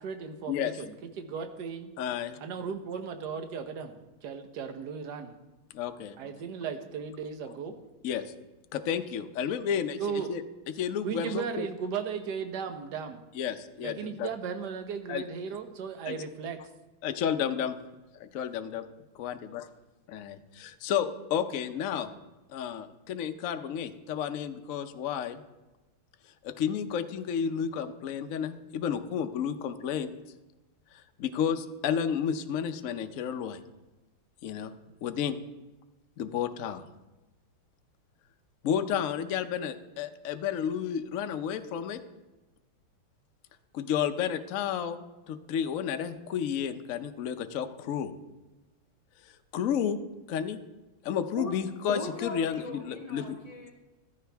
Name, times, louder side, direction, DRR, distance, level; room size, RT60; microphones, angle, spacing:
voice 1, 0.0-1.9 2.4-5.3 6.2-7.8 10.0-10.3 11.0-13.2 13.8-16.6, right 6 dB, 55° right, 7 dB, 1.4 m, -36 dB
voice 2, 2.0-2.4 5.7-6.2 8.0-8.3 8.7-10.4 10.8-11.7 13.3-14.3 15.1-15.2 16.0-16.2 17.0-17.8 18.1-18.8 19.1-19.7 20.1-22.1 22.5-25.4 26.4-30.1 30.9-33.6 34.4-34.7 35.0-35.4 36.2-36.8 38.6-42.0 43.7-48.1 49.2-50.0 50.3-50.6 51.0-53.4, left 8 dB, 85° left, 8 dB, 0.7 m, -31 dB
voice 3, 51.9-53.7, left 2 dB, 35° left, -1 dB, 0.6 m, -38 dB
14.5 x 13.5 x 3.4 m, 1.1 s
omnidirectional pair, 2.3 m